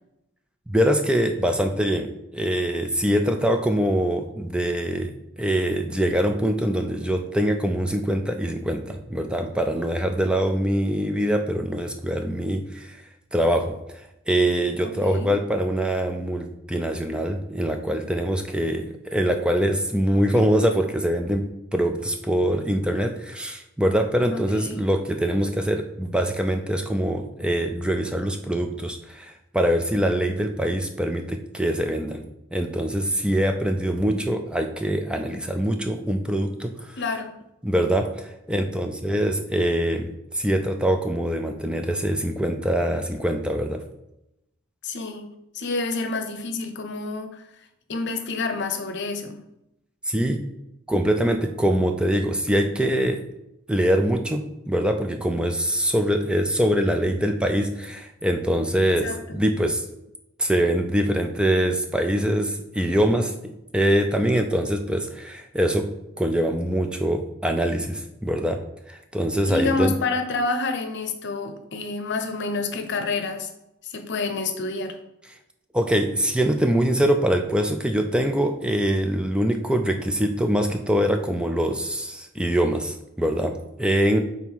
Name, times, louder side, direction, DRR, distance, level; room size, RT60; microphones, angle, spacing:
voice 1, 0.7-2.1 2.3-5.1 5.4-13.0 13.3-13.7 14.3-32.2 32.5-37.0 37.6-43.8 50.1-50.4 50.9-53.2 53.7-59.8 60.4-65.9 66.2-68.6 68.9-69.9 75.7-84.2, equal, 5° right, 5 dB, 0.4 m, -23 dB
voice 2, 14.8-15.3 20.3-20.4 24.3-24.9 37.0-37.3 44.8-45.3 45.5-47.4 47.9-49.4 59.0-59.4 69.5-73.5 73.8-75.0, left 3 dB, 55° left, 7 dB, 0.8 m, -28 dB
5.5 x 4.0 x 4.6 m, 0.86 s
head